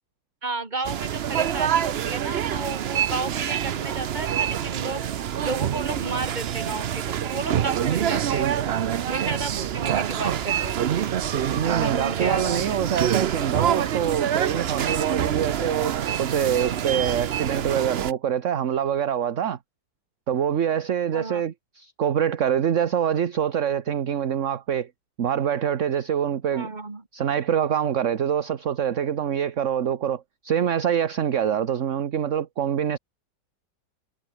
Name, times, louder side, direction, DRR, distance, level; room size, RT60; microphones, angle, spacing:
voice 1, 0.4-5.0 5.4-8.5 9.1-10.8 11.6-12.8 21.1-21.4 26.5-27.0, right 3 dB, 25° right, 2.4 m, -32 dB
sound 1, 0.8-18.1, right 9 dB, 85° right, 0.5 m, -26 dB
voice 2, 11.5-19.6 20.3-24.9 25.2-26.7 27.1-33.0, right 9 dB, 45° right, 1.2 m, -25 dB
omnidirectional pair, 2.0 m